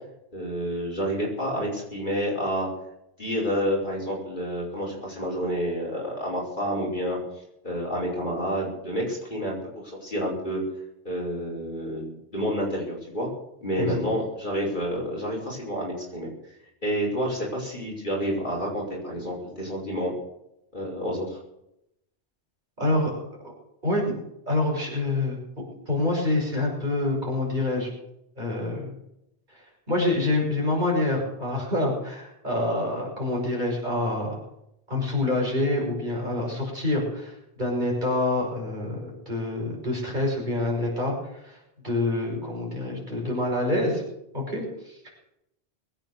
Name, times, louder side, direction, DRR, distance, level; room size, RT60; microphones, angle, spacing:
voice 1, 0.3-2.7 3.2-7.2 7.6-9.6 10.0-10.6 11.0-13.3 13.6-16.3 16.8-20.1 20.7-21.4, equal, 45° left, -4 dB, 5.7 m, -29 dB
voice 2, 22.8-23.2 23.8-25.4 25.9-27.9 28.4-29.0 29.5-34.4 34.9-41.6 41.8-44.0 44.3-45.0, left 2 dB, 45° right, -2 dB, 6.0 m, -27 dB
21.5 x 8.9 x 6.8 m, 0.83 s
omnidirectional pair, 1.1 m